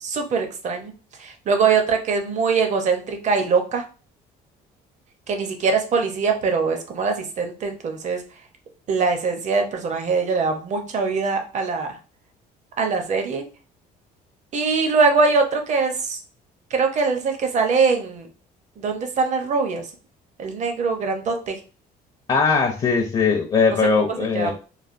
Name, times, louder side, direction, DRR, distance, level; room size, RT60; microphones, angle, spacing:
voice 1, 0.0-0.9 1.2-3.8 5.3-8.2 8.9-12.0 12.8-13.4 14.5-16.2 16.7-18.3 18.8-19.8 20.4-21.5 24.0-24.5, right 4 dB, 45° right, 5 dB, 0.7 m, -22 dB
voice 2, 22.3-24.5, left 5 dB, 30° left, 2 dB, 0.5 m, -20 dB
3.2 x 2.1 x 2.5 m, 0.35 s
cardioid pair, 110°, 17 cm